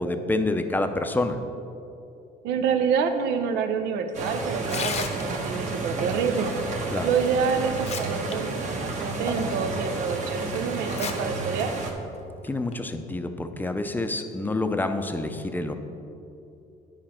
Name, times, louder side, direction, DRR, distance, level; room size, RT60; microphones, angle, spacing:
voice 1, 0.0-1.4 6.9-7.1 12.4-15.7, left 2 dB, 10° left, 7 dB, 0.5 m, -27 dB
voice 2, 2.4-6.5 7.0-11.7, right 6 dB, 85° right, 7 dB, 0.7 m, -27 dB
sound 1, 4.1-11.9, right 3 dB, 45° right, 1.1 m, -31 dB
Tearing, 4.6-5.6 7.0-7.1 7.6-8.3 8.7-8.8 9.5-9.6 10.8-11.1 11.5-11.6 12.5-12.7, left 6 dB, 40° left, 0.7 m, -33 dB
9.8 x 5.1 x 4.3 m, 2.7 s
cardioid pair, 110°, 17 cm